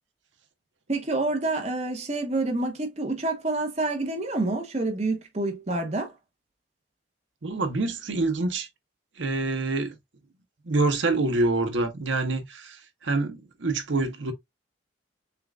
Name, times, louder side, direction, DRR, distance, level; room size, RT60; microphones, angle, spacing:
voice 1, 0.9-6.1, right 2 dB, 35° right, 1.0 m, -28 dB
voice 2, 7.4-8.7 9.2-10.0 10.6-14.3, right 2 dB, 85° right, 0.9 m, -26 dB
6.8 x 2.4 x 2.4 m
head